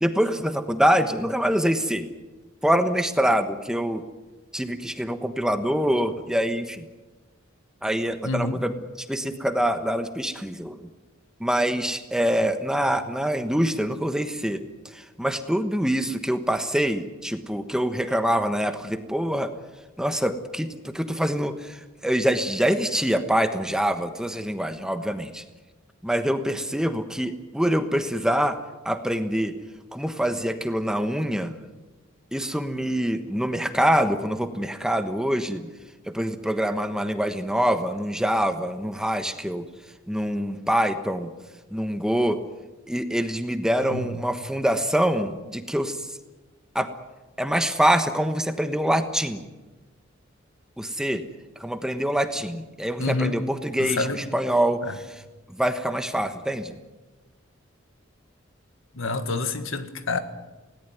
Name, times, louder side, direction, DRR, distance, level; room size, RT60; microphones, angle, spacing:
voice 1, 0.0-2.1 2.6-4.0 4.5-6.8 7.8-8.7 9.1-10.8 11.4-14.6 15.2-19.5 20.0-21.8 22.0-25.4 26.0-28.6 28.8-29.5 29.9-31.5 32.3-35.7 36.1-39.6 40.1-41.3 41.7-42.4 42.9-46.0 46.7-46.9 47.4-49.4 50.8-51.2 51.6-54.8 55.6-56.7, equal, 5° right, 1.2 m, -25 dB
voice 2, 8.2-8.6 43.8-44.2 53.0-53.4 53.8-54.2 54.8-55.0 58.9-60.2, left 3 dB, 75° left, 1.8 m, -28 dB
20.0 x 18.0 x 9.4 m
head